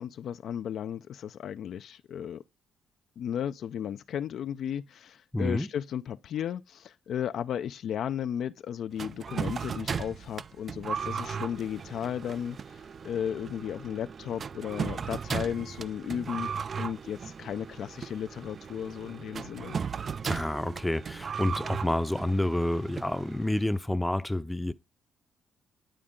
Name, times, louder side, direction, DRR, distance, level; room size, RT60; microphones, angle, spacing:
voice 1, 0.0-2.4 3.2-12.6 13.0-19.8, left 9 dB, 70° left, 0.4 m, -34 dB
voice 2, 5.3-5.7 20.2-24.7, left 1 dB, 5° left, 0.6 m, -29 dB
sound 1, 9.0-23.7, right 6 dB, 45° right, 0.3 m, -37 dB
10.0 x 4.3 x 3.7 m
cardioid pair, 90°, 0 cm